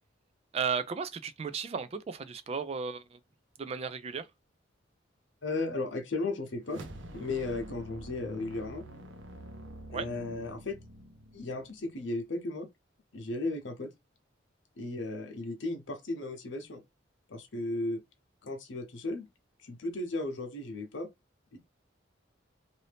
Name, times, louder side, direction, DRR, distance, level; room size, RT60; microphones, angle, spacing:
voice 1, 0.5-3.2 3.6-4.3 9.9-10.1, right 6 dB, 35° right, 0.3 m, -34 dB
voice 2, 5.4-6.8 7.1-8.8 9.9-10.8 11.3-12.7 13.1-13.9 14.8-16.8 17.3-18.0 18.4-19.3 19.6-21.1 21.5-21.6, left 2 dB, 75° left, 0.8 m, -35 dB
sound 1, 6.6-12.0, right 1 dB, 75° right, 0.6 m, -47 dB
2.7 x 2.6 x 3.3 m
head